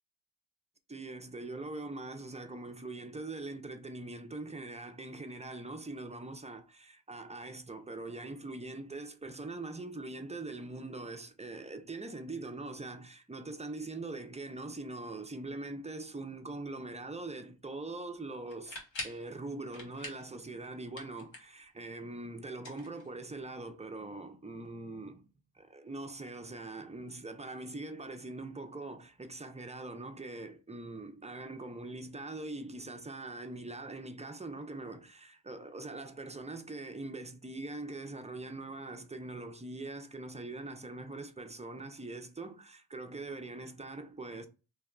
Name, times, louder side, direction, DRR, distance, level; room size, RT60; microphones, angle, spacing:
voice 1, 0.9-18.8 19.0-25.2 25.5-44.5, right 2 dB, 15° right, 0.3 m, -42 dB
sound 1, 18.5-19.3 19.7-20.3 20.6-21.6 22.5-23.5, left 2 dB, 80° left, 1.2 m, -44 dB
3.3 x 2.9 x 2.3 m
wide cardioid pair, 95°, 44 cm